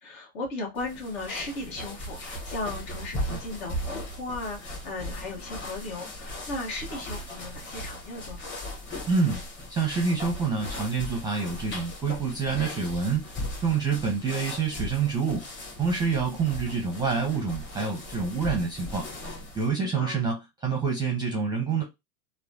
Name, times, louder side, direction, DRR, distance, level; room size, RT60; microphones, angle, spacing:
voice 1, 0.0-8.6 16.1-16.4 19.9-20.2, left 2 dB, 65° left, 1.3 m, -36 dB
sound 1, 0.8-19.7, left 1 dB, 25° left, 1.1 m, -38 dB
voice 2, 9.1-9.4 9.7-13.3 13.6-15.4 15.8-19.1 19.5-21.8, right 5 dB, 10° right, 0.5 m, -27 dB
3.1 x 2.1 x 2.5 m
hypercardioid pair, 115°, 47 cm